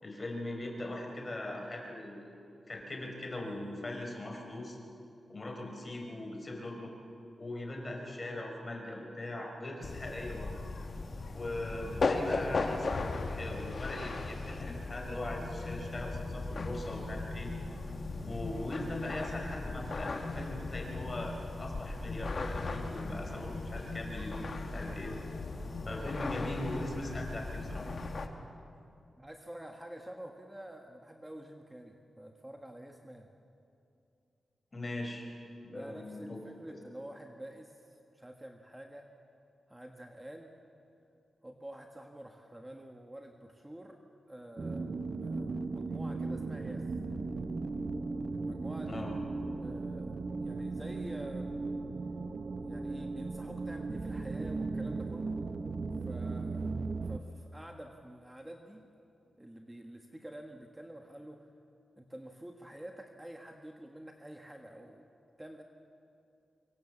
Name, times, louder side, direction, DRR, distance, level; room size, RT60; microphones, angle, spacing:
voice 1, 0.0-2.2 2.7-4.8 5.3-6.9 7.4-10.5 11.3-17.5 18.2-25.1 25.9-27.9 34.7-35.3 35.6-36.4 48.9-49.2, left 1 dB, 30° left, 2 dB, 4.6 m, -40 dB
sound 1, 9.8-28.3, left 3 dB, 50° left, 1.8 m, -37 dB
voice 2, 29.1-33.3 35.7-39.1 39.7-40.5 41.4-44.0 44.3-46.9 48.3-49.1 49.4-51.6 52.6-55.4 56.0-56.7 57.0-58.9 59.4-61.5 62.0-65.0 65.4-65.6, right 1 dB, 10° right, 3 dB, 1.5 m, -48 dB
sound 2, 44.6-57.2, right 3 dB, 45° right, 1.0 m, -37 dB
25.0 x 23.5 x 7.4 m, 2.7 s
wide cardioid pair, 105°, 0 cm